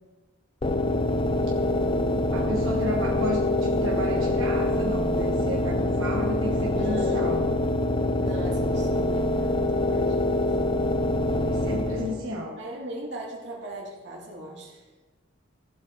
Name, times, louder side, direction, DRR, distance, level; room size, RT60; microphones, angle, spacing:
sound 1, 0.6-12.3, left 1 dB, 25° left, 0.5 m, -25 dB
voice 1, 2.3-7.5 11.4-12.6, equal, 85° right, -2 dB, 1.3 m, -33 dB
voice 2, 6.8-7.5 8.2-10.5 11.9-12.2 12.6-14.9, right 1 dB, 60° right, -3 dB, 2.6 m, -39 dB
15.5 x 7.7 x 3.9 m, 1.3 s
head